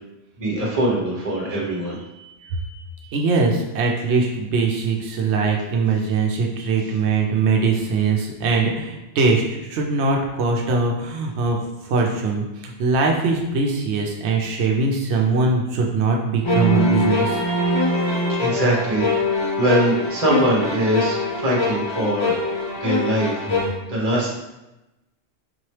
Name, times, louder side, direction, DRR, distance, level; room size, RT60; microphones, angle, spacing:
voice 1, 0.4-3.1 18.3-19.0 19.6-22.4 22.7-23.5 23.9-24.3, right 1 dB, 35° right, -4 dB, 1.1 m, -23 dB
voice 2, 3.1-11.6 11.8-17.4, right 4 dB, 90° right, 1 dB, 0.9 m, -21 dB
sound 1, 16.4-23.7, left 2 dB, 35° left, 0.5 m, -22 dB
4.2 x 2.9 x 3.1 m, 0.97 s
omnidirectional pair, 1.1 m